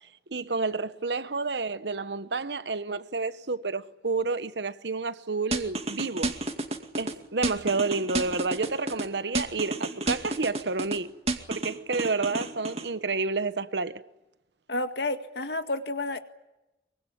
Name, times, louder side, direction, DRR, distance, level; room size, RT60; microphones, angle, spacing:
voice 1, 0.3-6.3 7.0-11.1 11.5-14.1, right 3 dB, 80° right, 1.2 m, -30 dB
sound 1, 5.5-7.1 7.4-9.0 9.3-11.0 11.3-12.9, right 2 dB, 35° right, 2.2 m, -30 dB
voice 2, 14.7-16.2, left 2 dB, 75° left, 1.9 m, -30 dB
24.0 x 23.5 x 10.0 m
head